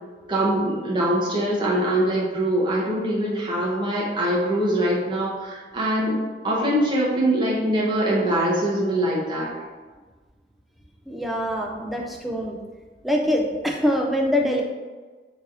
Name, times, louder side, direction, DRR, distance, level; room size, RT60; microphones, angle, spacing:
voice 1, 0.3-6.2 6.4-9.5, right 1 dB, 25° right, -5 dB, 0.9 m, -23 dB
voice 2, 11.1-12.6 13.0-14.6, equal, ahead, 0 dB, 0.3 m, -24 dB
3.8 x 3.1 x 2.7 m, 1.3 s
head